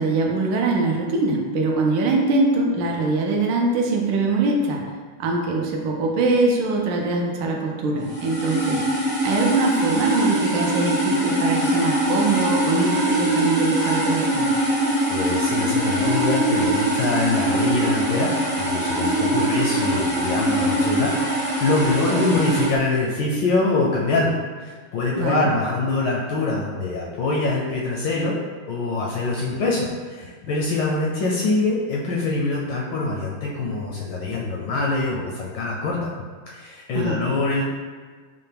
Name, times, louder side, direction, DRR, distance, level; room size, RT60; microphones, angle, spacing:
voice 1, 0.0-4.8 5.2-8.8 9.2-14.5 25.2-25.5 36.9-37.2, right 3 dB, 70° right, 0 dB, 1.1 m, -22 dB
sound 1, 8.0-22.7, right 1 dB, 15° right, 0.4 m, -22 dB
voice 2, 15.1-18.3 18.6-28.4 28.7-36.1 36.5-37.6, left 3 dB, 75° left, -3 dB, 1.1 m, -24 dB
5.5 x 2.1 x 3.3 m, 1.5 s
omnidirectional pair, 2.3 m